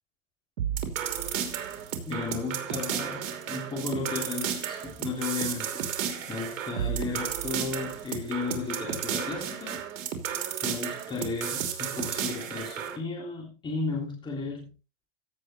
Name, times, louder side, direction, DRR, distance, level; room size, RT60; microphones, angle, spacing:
sound 1, 0.6-13.0, right 8 dB, 85° right, 3.0 m, -33 dB
voice 1, 2.1-9.8 10.6-14.7, left 4 dB, 10° left, -1 dB, 3.3 m, -34 dB
15.5 x 6.5 x 4.3 m, 0.31 s
supercardioid pair, 170°, 38 cm